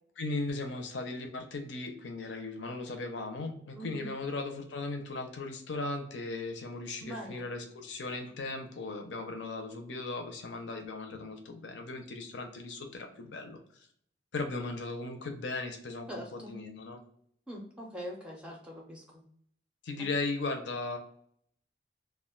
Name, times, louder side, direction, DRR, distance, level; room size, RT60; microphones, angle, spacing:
voice 1, 0.2-13.6 14.3-17.0 19.8-21.0, left 3 dB, 85° left, 4 dB, 0.6 m, -37 dB
voice 2, 3.7-4.1 7.0-7.4 16.1-16.6 17.5-19.2, equal, 5° right, -1 dB, 0.5 m, -43 dB
2.4 x 2.2 x 3.7 m, 0.67 s
head